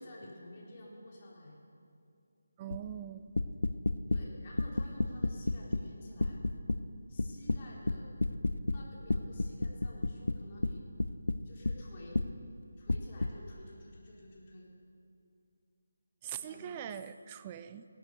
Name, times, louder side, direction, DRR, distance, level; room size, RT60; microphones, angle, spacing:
voice 1, 0.0-1.6 4.1-6.4 7.1-8.1 8.6-10.9 11.4-12.3 12.8-14.7 16.3-16.8, left 1 dB, 35° left, -3 dB, 3.5 m, -52 dB
voice 2, 2.6-3.3 16.2-17.9, right 10 dB, 20° right, 11 dB, 0.4 m, -42 dB
sound 1, 2.7-2.9 3.4-4.2 4.6-5.9 6.2-6.8 7.2-8.8 9.1-11.8 12.1-12.3 12.9-13.3, left 2 dB, 85° left, 0.6 m, -31 dB
16.5 x 11.5 x 6.7 m, 2.5 s
figure-of-eight pair, 165°, 0 cm